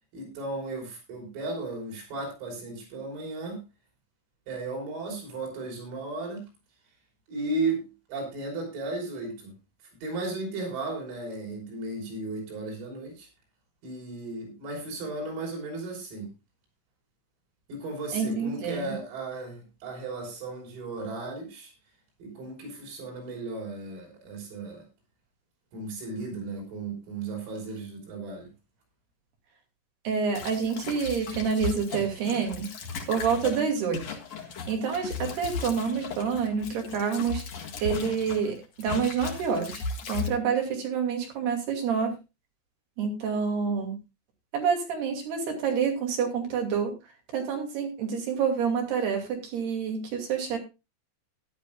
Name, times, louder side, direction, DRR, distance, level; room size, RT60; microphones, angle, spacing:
voice 1, 0.1-3.6 4.5-6.5 7.3-9.6 10.0-13.3 13.8-16.3 17.7-21.7 22.2-24.9 25.7-28.5, right 2 dB, 85° right, 1 dB, 7.8 m, -35 dB
voice 2, 18.1-19.0 30.0-32.7 33.1-34.0 34.7-37.4 37.8-42.1 43.0-44.0 44.5-46.9 47.3-50.6, right 6 dB, 55° right, 3 dB, 4.2 m, -28 dB
sound 1, 30.3-38.5 38.8-40.3, left 5 dB, 60° left, 1.8 m, -36 dB
17.0 x 11.0 x 2.4 m, 0.26 s
omnidirectional pair, 5.9 m